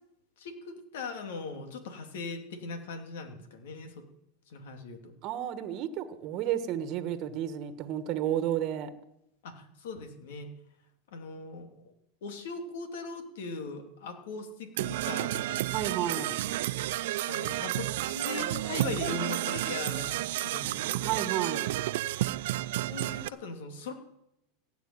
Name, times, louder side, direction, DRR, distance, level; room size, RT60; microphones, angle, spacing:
voice 1, 0.4-4.1 4.5-5.1 9.4-10.5 11.1-11.9 12.2-15.7 16.0-16.3 17.3-21.2 22.9-23.9, left 4 dB, 80° left, 5 dB, 2.7 m, -40 dB
voice 2, 5.2-8.9 15.7-16.3 20.9-21.7, right 11 dB, 50° right, 10 dB, 1.4 m, -32 dB
Percussion / Brass instrument, 14.8-23.3, right 16 dB, 75° right, 0.4 m, -31 dB
16.5 x 7.1 x 9.0 m, 0.83 s
supercardioid pair, 120°, 0 cm